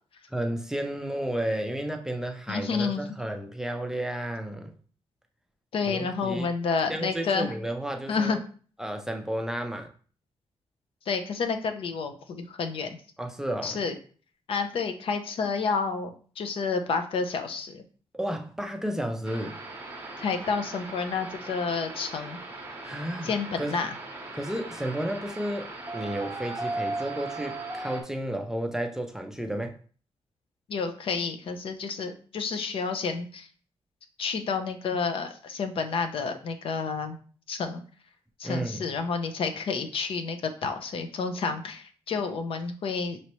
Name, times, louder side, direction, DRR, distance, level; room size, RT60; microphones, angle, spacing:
voice 1, 0.3-4.7 5.9-6.5 6.9-8.4 8.8-9.9 13.2-13.8 18.1-19.6 22.8-23.3 23.6-23.7 24.3-25.7 25.9-29.7 38.4-38.9, right 1 dB, 5° right, 4 dB, 0.4 m, -32 dB
voice 2, 2.5-3.0 5.7-7.5 8.1-8.4 11.1-13.0 13.6-13.9 14.5-17.8 20.2-22.4 23.2-23.9 30.7-33.5 34.2-37.2 37.5-37.8 38.4-43.2, left 5 dB, 65° left, 7 dB, 0.6 m, -30 dB
sound 1, 19.2-28.0, right 2 dB, 20° right, 0.8 m, -38 dB
5.4 x 3.0 x 3.0 m, 0.42 s
wide cardioid pair, 160°, 10 cm